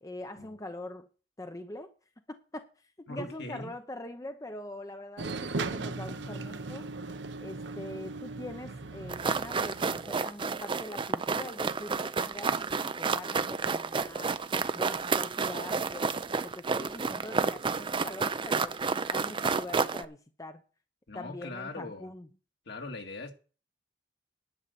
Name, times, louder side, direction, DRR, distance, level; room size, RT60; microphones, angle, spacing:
voice 1, 0.0-1.1 1.4-1.9 2.3-2.7 3.0-6.9 7.4-14.4 14.7-18.8 19.1-20.6 21.1-22.3, left 1 dB, 20° left, 0.7 m, -43 dB
voice 2, 3.1-3.7 21.1-22.1 22.7-23.3, left 2 dB, 60° left, 2.1 m, -40 dB
sound 1, 5.2-10.2, right 3 dB, 70° right, 0.9 m, -38 dB
sound 2, 9.1-20.0, right 4 dB, 25° right, 0.5 m, -30 dB
10.5 x 5.6 x 8.3 m
head